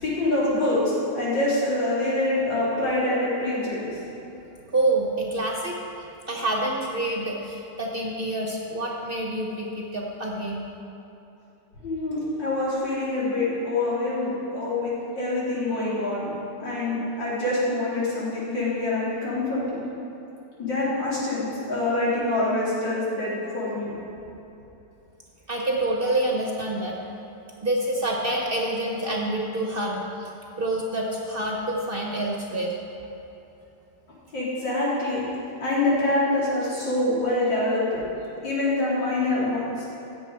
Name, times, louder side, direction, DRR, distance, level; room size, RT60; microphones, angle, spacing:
voice 1, 0.0-4.0 11.8-16.3 16.6-19.8 20.6-23.9 34.3-35.2 35.6-38.0 38.4-39.9, left 2 dB, 85° left, -8 dB, 3.9 m, -25 dB
voice 2, 4.7-5.8 6.3-10.6 25.5-27.0 27.6-30.3 30.6-32.8, right 1 dB, 35° right, -1 dB, 1.1 m, -27 dB
16.0 x 7.7 x 4.7 m, 3.0 s
omnidirectional pair, 1.9 m